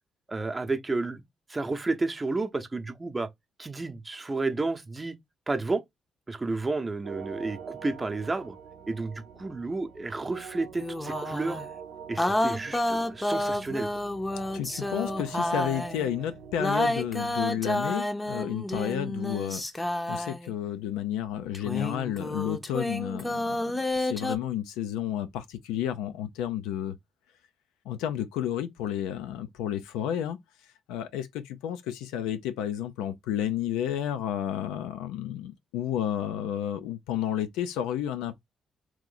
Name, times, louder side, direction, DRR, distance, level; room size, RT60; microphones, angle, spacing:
voice 1, 0.3-1.2 1.5-3.3 3.6-5.2 5.5-5.8 6.3-8.6 8.9-11.6 12.1-13.9, right 3 dB, 30° right, 0.7 m, -31 dB
sound 1, 7.0-17.4, right 7 dB, 80° right, 0.6 m, -44 dB
sound 2, 10.8-11.7 12.2-16.1 16.6-20.5 21.5-24.4, left 1 dB, 20° left, 0.6 m, -30 dB
voice 2, 14.5-19.6 20.1-26.9 27.9-30.4 30.9-38.4, left 10 dB, 85° left, 0.4 m, -31 dB
3.0 x 2.5 x 3.8 m
supercardioid pair, 50°, 0 cm